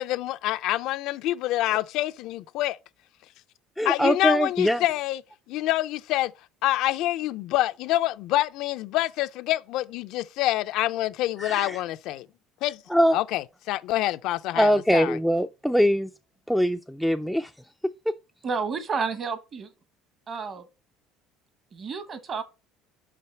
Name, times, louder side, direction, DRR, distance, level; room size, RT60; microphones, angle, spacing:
voice 1, 0.0-2.8 3.8-5.2 5.5-6.3 6.6-12.3 12.6-12.8 13.1-15.2, left 15 dB, 65° left, 0.4 m, -26 dB
voice 2, 3.8-4.8 11.4-11.8 12.9-13.2 14.6-16.1 16.5-17.5, equal, ahead, 0.4 m, -22 dB
voice 3, 18.4-19.7 20.3-20.6 21.7-22.4, right 5 dB, 35° right, 1.1 m, -30 dB
5.8 x 5.6 x 4.4 m
cardioid pair, 130°, 0 cm